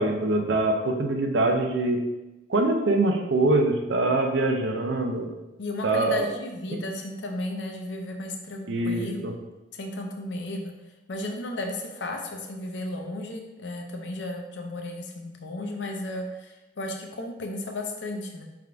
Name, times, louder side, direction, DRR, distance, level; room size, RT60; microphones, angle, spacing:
voice 1, 0.0-2.0 2.5-5.3 5.8-6.3 8.7-9.3, right 2 dB, 75° right, 3 dB, 0.5 m, -24 dB
voice 2, 5.6-9.4 9.7-10.7 11.1-18.4, left 1 dB, 70° left, 2 dB, 0.6 m, -34 dB
3.5 x 2.5 x 4.5 m, 1.0 s
head